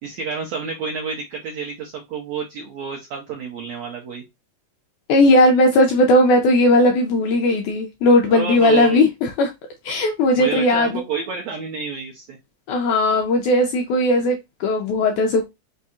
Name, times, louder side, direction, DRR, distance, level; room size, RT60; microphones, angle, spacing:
voice 1, 0.0-4.2 8.3-9.0 10.4-12.4, right 6 dB, 80° right, 1.6 m, -29 dB
voice 2, 5.1-9.5 9.8-11.0 12.7-15.5, left 1 dB, 80° left, 1.8 m, -17 dB
5.3 x 2.7 x 2.3 m
omnidirectional pair, 4.0 m